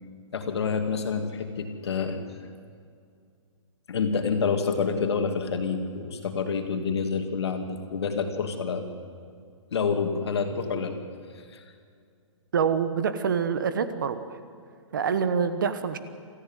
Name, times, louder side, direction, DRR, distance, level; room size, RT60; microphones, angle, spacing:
voice 1, 0.3-2.2 3.9-8.9 9.7-11.0 11.4-11.6, left 5 dB, 55° left, 6 dB, 2.6 m, -28 dB
voice 2, 12.5-14.4 14.9-16.0, right 6 dB, 40° right, 11 dB, 1.2 m, -26 dB
27.0 x 14.5 x 9.2 m, 2.2 s
hypercardioid pair, 180°, 17 cm